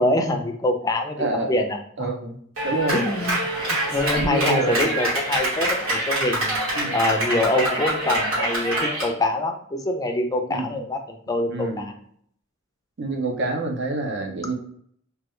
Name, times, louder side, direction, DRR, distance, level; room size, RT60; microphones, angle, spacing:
voice 1, 0.0-2.1 2.9-3.4 3.9-6.6 6.9-11.9, left 1 dB, 15° left, 4 dB, 0.4 m, -25 dB
voice 2, 1.2-1.5 2.0-2.4 2.6-3.1 4.2-4.9 6.8-7.0 10.5-10.7 11.5-11.9 13.0-14.5, right 2 dB, 55° right, 2 dB, 0.6 m, -27 dB
Clapping, 2.6-9.1, right 1 dB, 85° right, 1.5 m, -25 dB
3.2 x 2.3 x 3.0 m, 0.64 s
head